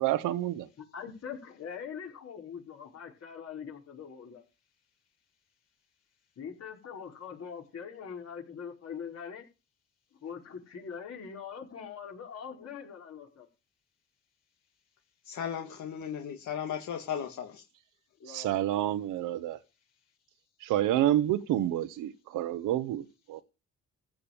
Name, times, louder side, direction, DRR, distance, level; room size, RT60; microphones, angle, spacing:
voice 1, 0.0-0.7 18.3-19.6 20.6-23.0 23.3-23.4, right 13 dB, 90° right, 1.1 m, -28 dB
voice 2, 0.8-4.4 6.4-9.4 10.2-13.5 18.2-18.8, left 7 dB, 55° left, 5.2 m, -42 dB
voice 3, 15.3-17.6, left 8 dB, 75° left, 2.0 m, -36 dB
15.5 x 5.3 x 8.8 m
cardioid pair, 90°, 30 cm